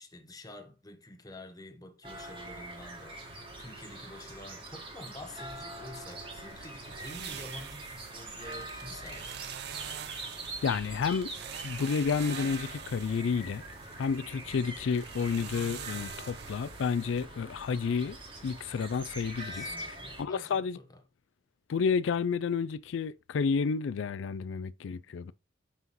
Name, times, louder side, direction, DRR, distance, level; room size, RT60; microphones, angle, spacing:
voice 1, 0.0-9.4 19.4-21.0, left 1 dB, 20° left, 1.0 m, -48 dB
sound 1, 2.0-20.2, right 1 dB, 30° right, 1.7 m, -44 dB
sound 2, 5.5-17.3, right 10 dB, 60° right, 0.4 m, -46 dB
voice 2, 10.6-11.3 11.6-13.6 14.0-18.2 18.4-20.8 21.7-25.3, left 5 dB, 75° left, 0.4 m, -30 dB
5.7 x 5.6 x 3.0 m
head